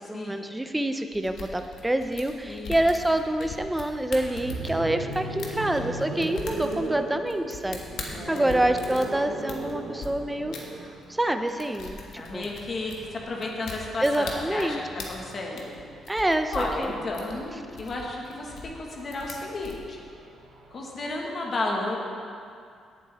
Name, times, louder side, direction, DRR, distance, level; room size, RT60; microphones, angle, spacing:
voice 1, 0.0-10.5 11.1-12.5 14.0-15.1 16.1-16.9, right 1 dB, 5° right, 7 dB, 0.5 m, -27 dB
sound 1, 1.1-10.1 10.5-10.6 11.0-11.2 11.5-19.8, left 4 dB, 65° left, 1.3 m, -41 dB
voice 2, 2.5-2.8 4.7-5.0 8.1-8.5 12.2-14.8 15.1-15.8 16.5-20.0 20.7-22.0, left 2 dB, 35° left, -1 dB, 1.4 m, -33 dB
sound 2, 4.2-16.2 17.4-21.0, right 2 dB, 85° right, 1.3 m, -38 dB
17.0 x 7.8 x 3.4 m, 2.4 s
cardioid pair, 170°, 0 cm